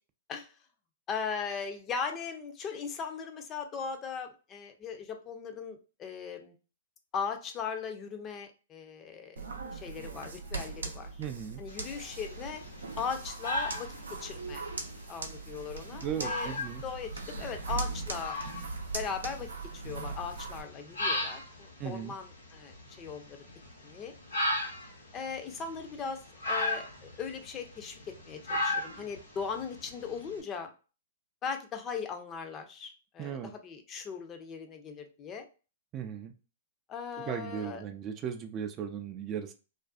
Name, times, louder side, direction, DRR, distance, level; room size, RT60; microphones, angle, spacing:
voice 1, 1.1-6.5 7.1-9.4 9.7-11.2 11.6-12.6 13.0-13.9 14.2-14.6 15.1-16.6 16.8-18.4 18.9-23.4 23.8-24.1 25.1-28.0 28.3-30.7 31.4-35.5 36.9-37.8, left 6 dB, 30° left, 0.5 m, -38 dB
sound 1, 9.4-20.6, right 3 dB, 90° right, 0.5 m, -40 dB
voice 2, 11.2-11.6 16.0-16.8 21.8-22.1 33.2-33.5 35.9-36.3 37.3-39.5, right 8 dB, 30° right, 0.3 m, -37 dB
sound 2, 11.7-30.4, left 2 dB, 90° left, 0.9 m, -38 dB
2.5 x 2.3 x 2.3 m
hypercardioid pair, 120°, 0 cm